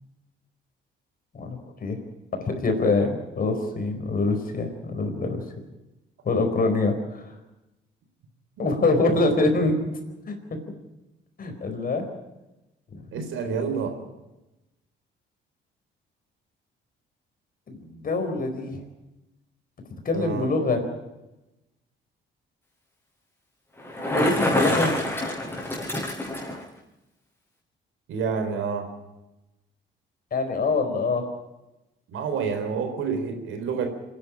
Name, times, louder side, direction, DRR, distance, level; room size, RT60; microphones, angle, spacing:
voice 1, 1.3-2.0 2.5-5.4 6.2-7.2 8.6-9.8 10.3-10.4 11.4-12.1 17.7-18.8 20.0-20.8 24.1-24.9 30.3-31.2, left 3 dB, 45° left, 5 dB, 4.5 m, -24 dB
voice 2, 8.6-9.2 13.1-14.0 20.1-20.5 24.6-24.8 28.1-28.9 32.1-33.9, right 5 dB, 80° right, 6 dB, 4.0 m, -29 dB
Bicycle, 23.8-26.6, left 1 dB, 10° left, 6.0 m, -26 dB
25.5 x 10.5 x 10.0 m, 0.97 s
cardioid pair, 90°, 20 cm